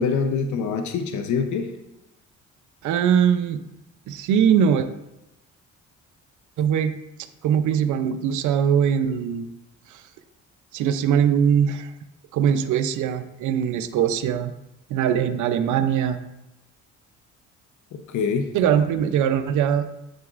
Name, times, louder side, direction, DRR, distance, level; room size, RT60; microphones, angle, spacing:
voice 1, 0.0-1.7 18.1-18.5, left 5 dB, 75° left, 6 dB, 0.8 m, -24 dB
voice 2, 2.8-3.6 4.1-4.9 6.6-6.9 7.4-9.5 10.7-11.9 12.3-14.5 14.9-16.2 18.5-19.9, right 8 dB, 75° right, 9 dB, 0.6 m, -21 dB
8.6 x 6.4 x 2.5 m, 0.93 s
cardioid pair, 90°, 30 cm